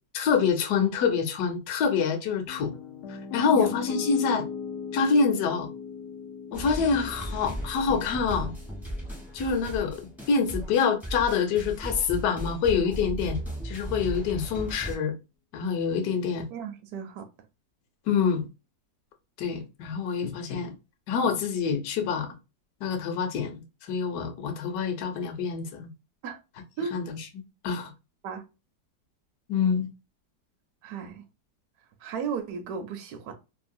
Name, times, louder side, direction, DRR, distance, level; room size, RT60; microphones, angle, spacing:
voice 1, 0.1-2.7 3.1-4.5 4.9-5.7 6.5-8.5 9.3-13.4 13.6-15.1 15.5-16.5 18.1-18.5 19.4-20.7 21.1-22.3 22.8-25.9 26.9-27.2 27.6-27.9 29.5-29.9, left 6 dB, 65° left, 1.0 m, -26 dB
Piano, 2.5-10.6, left 7 dB, 85° left, 0.6 m, -39 dB
sound 1, 6.5-15.0, right 1 dB, ahead, 0.4 m, -36 dB
voice 2, 16.5-17.3 26.2-26.4 26.8-27.0 28.2-28.4 30.8-31.2 32.0-33.3, right 6 dB, 70° right, 0.9 m, -34 dB
3.1 x 2.1 x 2.5 m
omnidirectional pair, 2.0 m